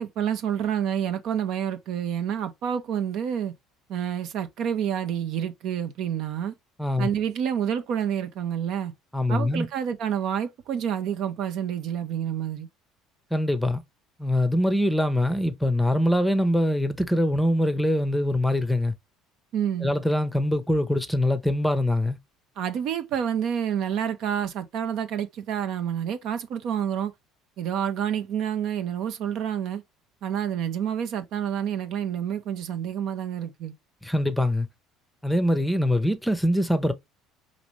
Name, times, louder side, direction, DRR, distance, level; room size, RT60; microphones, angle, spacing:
voice 1, 0.0-3.5 3.9-6.5 7.0-8.9 9.3-12.7 19.5-19.9 22.6-27.1 27.6-29.8 30.2-33.7, right 9 dB, 60° right, 0.6 m, -28 dB
voice 2, 9.1-9.7 13.3-13.8 14.2-18.9 19.8-22.2 34.0-34.7 35.2-36.9, left 1 dB, 5° left, 0.7 m, -23 dB
5.0 x 2.5 x 3.1 m
hypercardioid pair, 60°, 0 cm